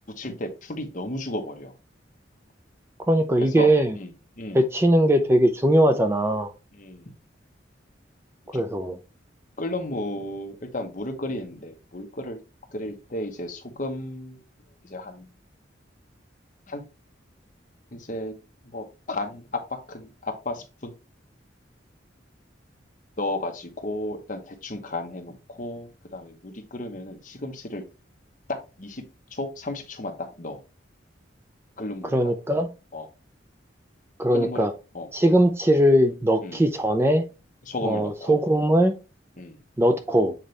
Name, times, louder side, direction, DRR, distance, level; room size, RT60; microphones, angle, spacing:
voice 1, 0.2-1.7 3.4-4.1 4.4-4.6 6.7-7.2 8.5-8.6 9.6-12.4 12.7-14.4 14.8-15.3 16.7-16.8 17.9-18.3 18.6-19.6 19.9-20.9 23.2-27.8 28.5-29.0 29.3-30.6 31.8-32.3 32.9-33.1 34.3-34.7 34.9-35.1 36.4-36.6 37.6-38.4 39.4-39.6, left 1 dB, 45° left, 1.1 m, -33 dB
voice 2, 3.1-4.0 4.5-6.5 8.5-9.0 32.1-32.7 34.2-34.7 35.1-37.2 37.8-38.9 39.8-40.3, right 1 dB, 15° right, 0.5 m, -20 dB
7.4 x 4.0 x 3.3 m
head